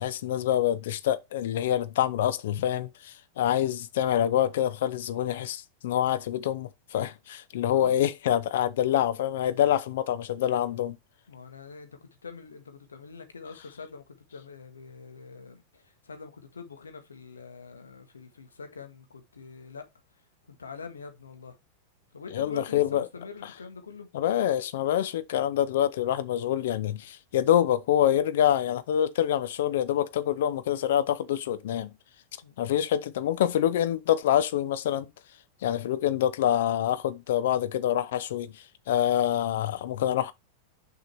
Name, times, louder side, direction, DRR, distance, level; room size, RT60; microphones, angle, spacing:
voice 1, 0.0-11.0 22.3-23.1 24.1-31.9 32.6-35.1 35.6-40.3, left 11 dB, 55° left, 0.8 m, -26 dB
voice 2, 7.7-8.0 11.3-19.9 20.5-21.6 22.1-24.1 32.4-32.5, left 4 dB, 70° left, 1.6 m, -44 dB
6.6 x 5.6 x 4.4 m
figure-of-eight pair, 90°, 0 cm